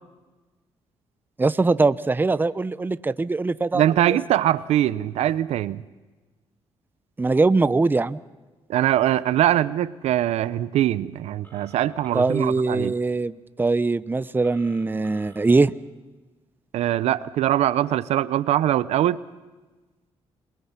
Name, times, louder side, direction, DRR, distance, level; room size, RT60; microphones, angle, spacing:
voice 1, 1.4-4.2 7.2-8.2 12.1-13.3 13.6-15.7, right 3 dB, 20° right, 16 dB, 0.7 m, -22 dB
voice 2, 3.7-5.8 8.7-12.9 16.7-19.2, right 12 dB, 80° right, 17 dB, 0.7 m, -22 dB
Telephone, 11.4-12.5 14.4-15.4, right 1 dB, 20° left, 5.2 m, -51 dB
28.5 x 21.0 x 5.9 m, 1.2 s
cardioid pair, 80°, 11 cm